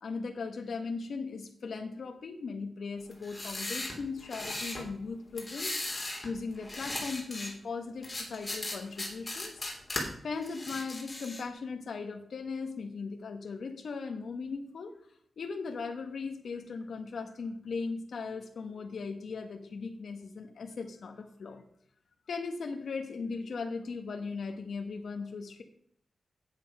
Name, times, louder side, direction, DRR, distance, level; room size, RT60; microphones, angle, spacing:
voice 1, 0.0-5.8 6.2-9.6 10.2-15.0 15.4-21.6 22.3-25.6, left 4 dB, 75° left, 5 dB, 1.1 m, -38 dB
sound 1, 3.1-4.8 5.4-6.3 6.6-7.5 8.0-10.0 10.4-11.5, left 1 dB, 20° left, 3.0 m, -37 dB
8.7 x 7.9 x 5.3 m, 0.66 s
wide cardioid pair, 110°, 0 cm